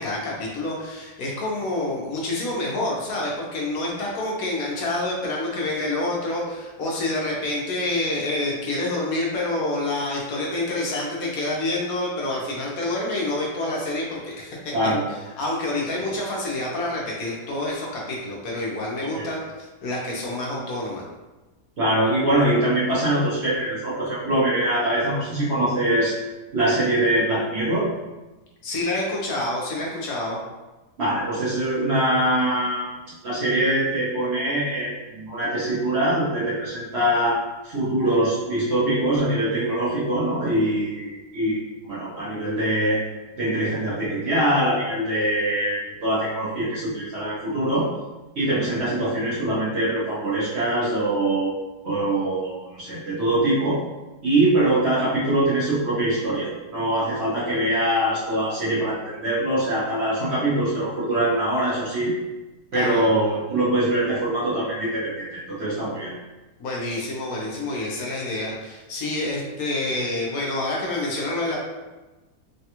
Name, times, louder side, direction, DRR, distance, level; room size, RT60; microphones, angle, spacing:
voice 1, 0.0-14.7 15.4-19.4 19.8-21.0 28.6-30.4 62.7-63.1 66.6-71.6, left 2 dB, 65° left, -3 dB, 1.1 m, -27 dB
voice 2, 14.7-15.0 19.0-19.3 21.8-26.1 26.5-27.9 31.0-32.9 33.2-37.4 37.6-41.6 41.8-43.0 43.4-47.9 48.4-51.5 51.8-53.8 54.2-62.1 62.7-66.2, right 1 dB, 55° right, -8 dB, 0.8 m, -23 dB
3.3 x 2.2 x 2.8 m, 1.1 s
omnidirectional pair, 1.8 m